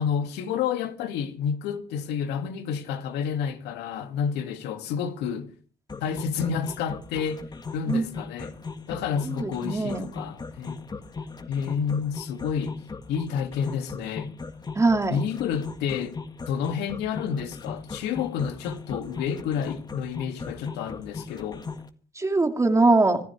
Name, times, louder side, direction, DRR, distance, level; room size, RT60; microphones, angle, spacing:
voice 1, 0.0-5.5 6.0-7.4 7.7-8.5 8.9-10.8 11.5-12.8 13.1-14.3 15.1-16.2 16.5-21.6, left 7 dB, 85° left, 2.3 m, -29 dB
sound 1, 5.9-21.9, left 4 dB, 25° left, 1.8 m, -37 dB
voice 2, 9.4-10.1 14.8-15.2 22.2-23.2, right 3 dB, 15° right, 2.4 m, -22 dB
26.0 x 14.5 x 3.4 m
cardioid pair, 110°, 17 cm